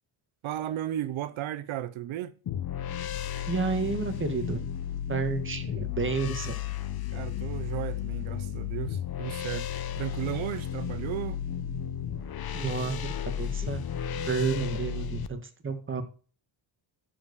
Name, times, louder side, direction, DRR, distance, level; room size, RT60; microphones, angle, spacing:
voice 1, 0.4-2.3 7.1-11.4, right 13 dB, 85° right, 0.8 m, -35 dB
sound 1, 2.5-15.3, left 9 dB, 50° left, 0.9 m, -34 dB
voice 2, 3.5-4.6 5.1-6.6 12.5-13.8 14.2-16.0, right 4 dB, 25° right, 1.8 m, -31 dB
13.0 x 5.1 x 6.7 m
cardioid pair, 125°, 47 cm